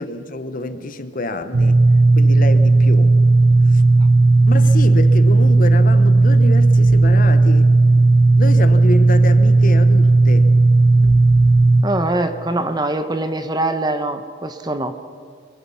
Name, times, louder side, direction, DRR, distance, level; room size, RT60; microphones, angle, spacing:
voice 1, 0.0-1.8 2.1-3.2 3.7-3.8 4.5-7.7 8.4-10.5, left 2 dB, 45° left, 1.0 m, -27 dB
sound 1, 1.5-11.8, right 2 dB, 80° right, 1.1 m, -13 dB
voice 2, 11.8-15.0, right 2 dB, 20° right, 1.0 m, -23 dB
24.0 x 22.5 x 5.7 m
head